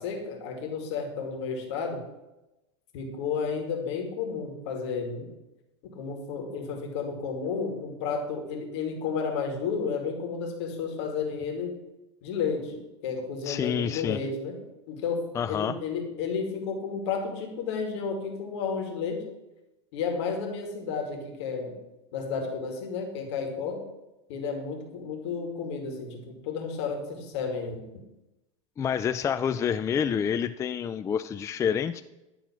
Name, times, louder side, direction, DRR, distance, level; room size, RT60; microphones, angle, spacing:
voice 1, 0.0-2.0 2.9-5.3 5.8-11.7 12.2-12.8 13.0-14.6 14.9-19.2 19.9-21.8 22.1-23.8 24.3-27.8, left 5 dB, 60° left, 2 dB, 2.3 m, -32 dB
voice 2, 13.4-14.2 15.3-15.8 28.8-32.0, left 8 dB, 20° left, 11 dB, 0.3 m, -28 dB
11.5 x 3.9 x 7.2 m, 0.98 s
hypercardioid pair, 90°, 16 cm